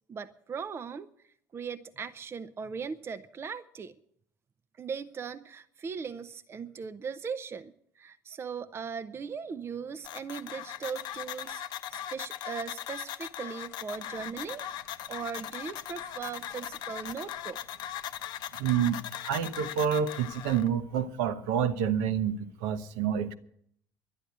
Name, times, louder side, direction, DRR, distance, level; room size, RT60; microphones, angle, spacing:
voice 1, 0.1-1.1 1.5-3.9 4.8-11.6 11.9-17.6, right 6 dB, 25° right, 10 dB, 0.5 m, -39 dB
sound 1, 10.0-20.7, left 11 dB, 45° left, 0.7 m, -39 dB
voice 2, 18.6-23.3, right 8 dB, 60° right, 11 dB, 0.8 m, -28 dB
11.5 x 10.0 x 8.0 m, 0.67 s
figure-of-eight pair, 60°, 10 cm